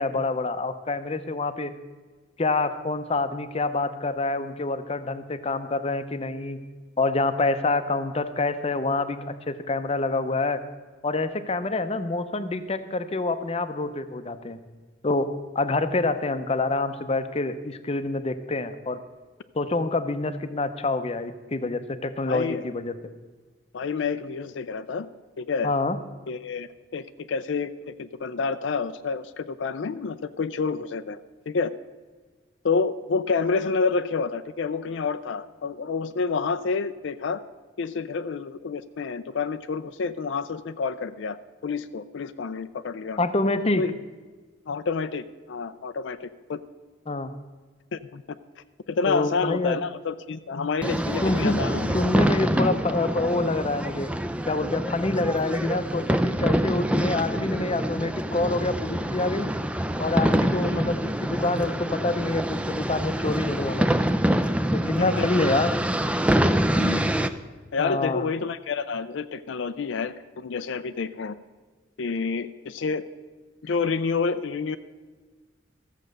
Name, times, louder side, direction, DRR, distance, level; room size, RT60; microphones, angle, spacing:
voice 1, 0.0-1.7 2.4-6.6 7.0-9.2 9.5-10.6 11.0-14.6 15.0-15.3 15.5-19.0 19.5-22.9 25.6-26.0 43.2-43.8 47.1-47.3 49.1-49.8 51.2-51.6 51.9-54.1 54.5-59.5 60.0-64.0 64.7-65.7 67.8-68.2, left 2 dB, 35° left, 10 dB, 0.7 m, -26 dB
voice 2, 22.3-22.6 23.7-25.1 25.4-25.7 26.3-31.2 31.5-31.7 32.6-37.4 37.8-41.4 41.6-43.2 43.8-43.9 44.7-46.6 47.9-48.4 48.9-51.9 60.5-60.8 65.0-65.3 66.7-67.1 67.7-71.3 72.0-73.0 73.6-74.8, left 5 dB, 75° left, 11 dB, 0.4 m, -29 dB
sound 1, 50.8-67.3, equal, 5° right, 0.4 m, -25 dB
14.0 x 7.4 x 6.6 m, 1.4 s
head